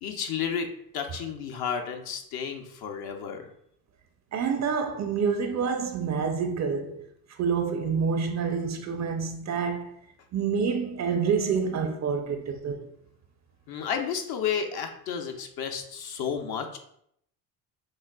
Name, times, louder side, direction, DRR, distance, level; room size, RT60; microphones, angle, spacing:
voice 1, 0.0-3.5 13.7-16.8, left 7 dB, 50° left, 0.7 m, -32 dB
voice 2, 4.3-7.0 7.4-9.9 10.3-12.8, right 6 dB, 35° right, 0.5 m, -27 dB
6.1 x 2.4 x 2.3 m
hypercardioid pair, 70°, 48 cm